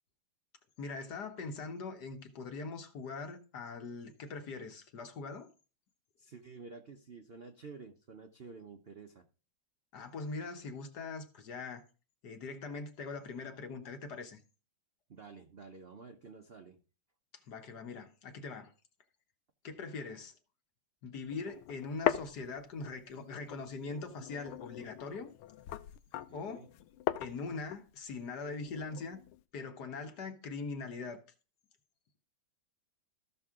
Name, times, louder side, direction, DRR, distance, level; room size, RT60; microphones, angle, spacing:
voice 1, 0.8-5.5 9.9-11.8 12.2-14.4 17.5-18.7 19.6-20.3 21.0-25.3 26.3-26.7 27.2-29.2 29.5-31.2, left 4 dB, 55° left, 1.6 m, -42 dB
voice 2, 6.2-9.2 15.1-16.8 26.3-26.7, right 4 dB, 60° right, 0.6 m, -51 dB
sound 1, 21.3-23.1 23.5-29.4, left 12 dB, 90° left, 1.5 m, -39 dB
14.5 x 6.2 x 3.6 m
omnidirectional pair, 2.2 m